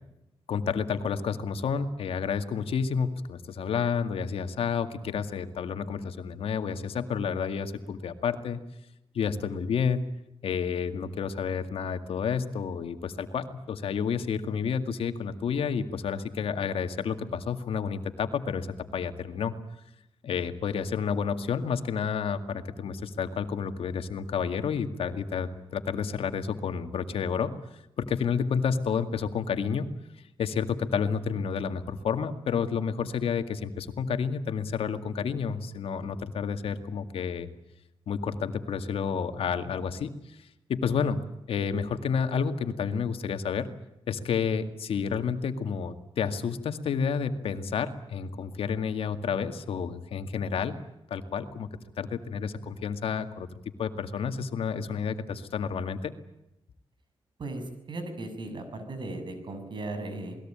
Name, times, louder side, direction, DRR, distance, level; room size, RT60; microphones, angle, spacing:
voice 1, 0.5-8.6 9.1-10.1 10.4-19.5 20.2-27.5 28.0-29.9 30.4-37.5 38.1-41.2 41.5-43.7 44.1-50.8 51.1-51.7 52.0-53.5 53.8-56.1, left 6 dB, 90° left, 8 dB, 2.1 m, -30 dB
voice 2, 57.4-60.4, right 2 dB, 55° right, 8 dB, 7.1 m, -37 dB
28.5 x 20.5 x 8.9 m, 0.88 s
wide cardioid pair, 125°, 10 cm